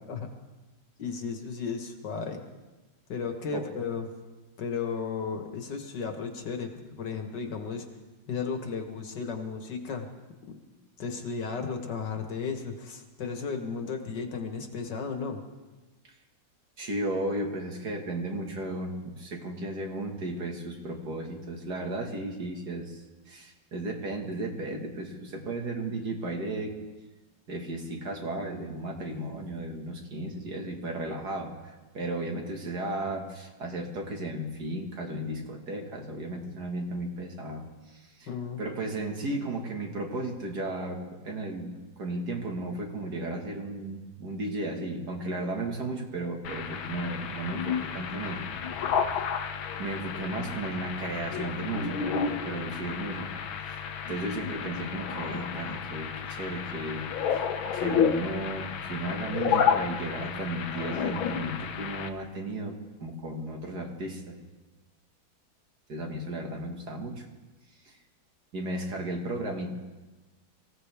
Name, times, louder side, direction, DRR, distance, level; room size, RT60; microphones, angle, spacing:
voice 1, 1.0-2.4 3.1-4.1 4.6-7.9 8.3-10.1 10.5-10.6 11.0-15.4 38.3-38.6, left 5 dB, 65° left, 5 dB, 1.9 m, -34 dB
voice 2, 16.8-26.7 27.5-38.3 38.6-48.5 49.8-53.4 53.7-53.8 54.1-57.0 57.7-62.8 63.0-64.4 65.9-67.3 67.9-68.0 68.5-69.7, right 2 dB, 55° right, 2 dB, 2.3 m, -34 dB
sound 1, 46.4-62.1, left 7 dB, 90° left, 1.7 m, -31 dB
24.5 x 16.0 x 3.5 m, 1.2 s
omnidirectional pair, 2.1 m